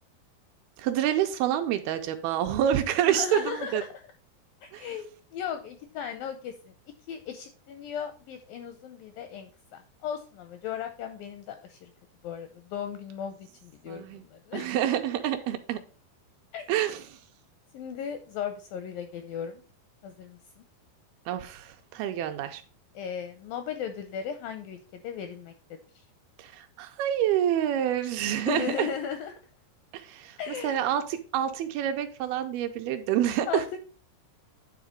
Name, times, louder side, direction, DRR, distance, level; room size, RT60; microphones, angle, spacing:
voice 1, 0.8-3.8 4.7-4.9 13.9-14.2 14.5-15.8 16.7-17.0 21.3-22.6 26.4-28.9 29.9-33.7, right 11 dB, 80° right, 7 dB, 2.3 m, -28 dB
voice 2, 3.1-3.9 4.6-6.7 7.1-11.9 12.2-14.7 16.5-16.7 17.7-19.6 20.0-20.6 22.9-26.0 28.5-29.3 30.4-31.0 33.5-33.8, left 8 dB, 80° left, 8 dB, 2.0 m, -36 dB
9.4 x 3.8 x 5.0 m, 0.38 s
omnidirectional pair, 4.7 m